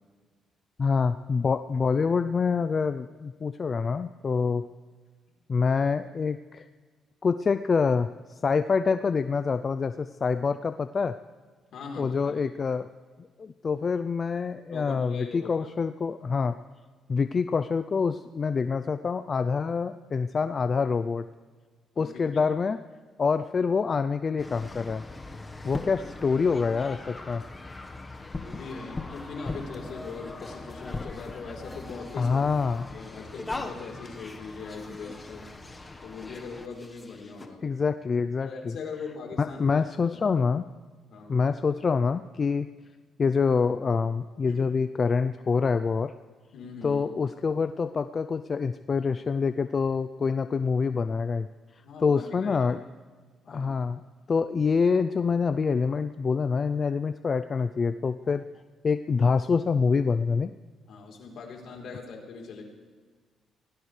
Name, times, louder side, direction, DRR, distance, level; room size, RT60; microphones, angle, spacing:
voice 1, 0.8-4.6 5.5-6.7 7.2-8.1 8.4-11.1 12.0-12.9 13.4-16.5 17.1-21.2 22.0-22.8 23.2-25.0 25.6-27.4 32.2-32.9 37.6-38.8 39.4-40.6 41.3-42.7 43.2-46.1 46.8-51.5 52.0-52.8 53.5-54.0 54.3-58.4 58.8-60.5, left 5 dB, 40° left, 11 dB, 0.4 m, -26 dB
voice 2, 11.7-12.2 14.7-15.7 21.9-22.4 26.0-26.1 28.3-32.4 32.8-35.5 36.0-37.7 38.4-39.8 40.1-40.2 41.1-41.4 44.5-44.7 46.5-47.1 51.8-52.6 53.4-53.7 60.9-62.6, left 4 dB, 75° left, 0 dB, 3.7 m, -41 dB
sound 1, 24.4-37.5, left 2 dB, 20° left, 1.3 m, -40 dB
24.5 x 17.5 x 3.3 m, 1.5 s
cardioid pair, 95°, 0 cm